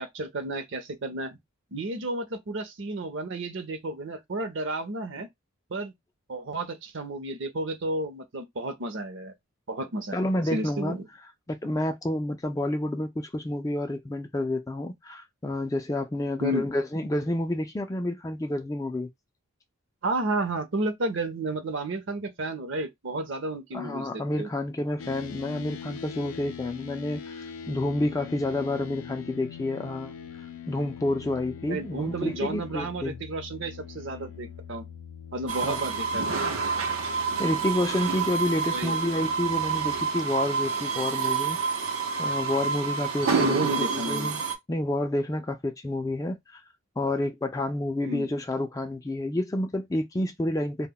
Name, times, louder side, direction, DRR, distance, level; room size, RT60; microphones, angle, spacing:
voice 1, 0.0-1.4 1.7-5.3 5.7-5.9 6.3-9.3 9.7-11.1 16.4-16.7 20.0-24.5 31.7-34.9 35.3-36.4 38.7-39.0 43.3-44.3 48.0-48.3, right 2 dB, 60° right, 0.7 m, -32 dB
voice 2, 10.1-11.0 11.5-19.1 23.7-30.1 30.7-33.2 35.6-35.8 37.4-41.6 42.2-46.6 47.0-50.9, left 1 dB, 15° left, 0.3 m, -29 dB
sound 1, 25.0-40.0, left 8 dB, 80° left, 0.5 m, -43 dB
sound 2, 35.5-44.6, right 5 dB, 90° right, 0.7 m, -28 dB
2.2 x 2.1 x 3.5 m
head